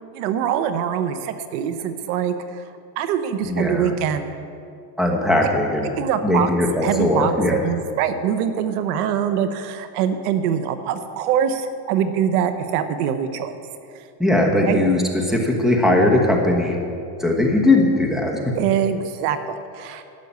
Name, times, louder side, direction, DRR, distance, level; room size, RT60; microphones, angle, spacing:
voice 1, 0.1-2.6 3.0-4.3 6.0-6.5 6.8-13.6 14.6-14.8 18.5-20.0, right 8 dB, 75° right, 9 dB, 1.0 m, -23 dB
voice 2, 3.4-3.9 5.0-5.9 6.2-7.6 14.2-16.8 17.2-18.4, left 1 dB, ahead, 1 dB, 1.2 m, -19 dB
11.5 x 6.9 x 8.2 m, 2.5 s
supercardioid pair, 145°, 47 cm